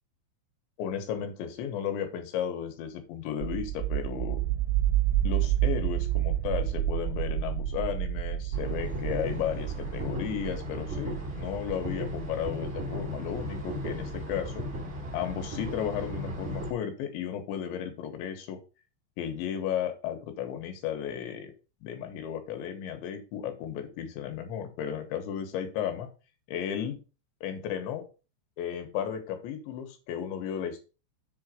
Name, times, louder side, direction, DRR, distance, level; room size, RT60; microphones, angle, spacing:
voice 1, 0.8-4.4 5.2-14.7 15.1-18.6 19.2-21.5 21.8-26.1 26.5-27.0 27.4-28.1 28.6-30.8, left 9 dB, 80° left, 6 dB, 3.4 m, -34 dB
sound 1, 3.4-14.1, right 13 dB, 85° right, 2.9 m, -30 dB
sound 2, 8.5-16.7, equal, 45° right, 0.9 m, -36 dB
6.9 x 4.0 x 6.3 m, 0.33 s
omnidirectional pair, 5.3 m